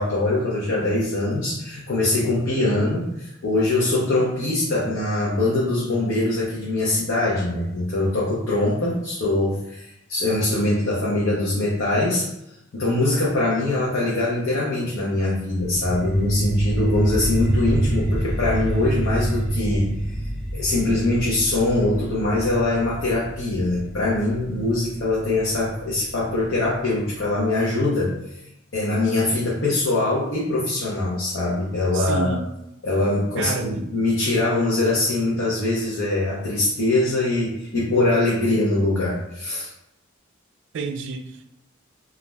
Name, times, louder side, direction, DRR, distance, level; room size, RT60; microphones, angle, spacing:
voice 1, 0.0-12.3 12.7-19.9 20.5-28.1 28.7-32.4 32.8-39.7, left 2 dB, 70° left, -7 dB, 0.7 m, -23 dB
sound 1, 15.6-26.6, right 1 dB, 5° left, 0.7 m, -26 dB
voice 2, 31.9-32.5 33.4-33.9 40.7-41.5, right 4 dB, 65° right, 7 dB, 0.3 m, -30 dB
2.4 x 2.0 x 3.2 m, 0.82 s
head